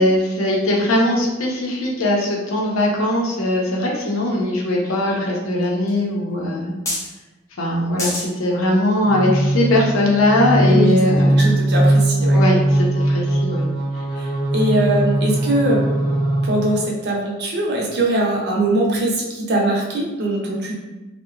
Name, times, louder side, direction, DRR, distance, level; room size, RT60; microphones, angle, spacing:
voice 1, 0.0-6.7 7.6-11.6 12.3-13.6, left 1 dB, 70° left, -2 dB, 0.6 m, -20 dB
sound 1, 3.6-3.7 4.1-5.1 5.6-5.7 5.9-6.0 6.8-7.2 8.0-8.2 8.9-9.0, left 1 dB, 15° left, 0.6 m, -27 dB
sound 2, 9.0-17.0, right 1 dB, 40° left, 0.8 m, -19 dB
voice 2, 10.7-11.0 11.3-12.4 14.2-14.3 14.5-15.8 16.4-20.7, right 1 dB, 55° right, -2 dB, 0.6 m, -21 dB
2.7 x 2.1 x 2.4 m, 1.1 s
head